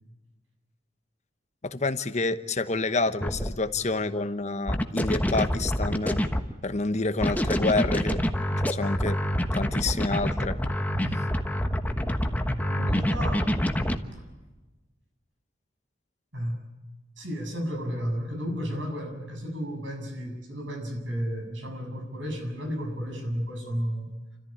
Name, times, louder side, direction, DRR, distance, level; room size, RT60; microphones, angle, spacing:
voice 1, 1.6-6.2 6.6-8.2 8.6-9.2 9.5-10.6, left 3 dB, 40° left, 10 dB, 1.1 m, -28 dB
sound 1, 3.1-3.5 4.7-6.5 7.2-14.0, equal, 10° left, 1.2 m, -26 dB
voice 2, 12.5-13.5 16.3-16.6 17.2-24.1, equal, 90° right, 4 dB, 7.2 m, -33 dB
29.5 x 14.0 x 9.9 m, 1.2 s
head